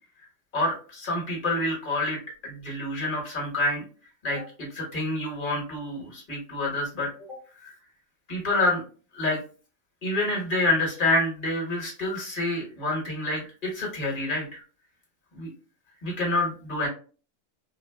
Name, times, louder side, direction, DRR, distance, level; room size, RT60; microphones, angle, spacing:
voice 1, 0.5-3.8 4.2-7.1 7.6-7.7 8.3-8.8 9.1-9.4 10.0-14.6 15.3-15.5 16.0-16.9, left 2 dB, 35° left, -3 dB, 1.3 m, -27 dB
3.8 x 2.3 x 2.2 m, 0.38 s
omnidirectional pair, 1.7 m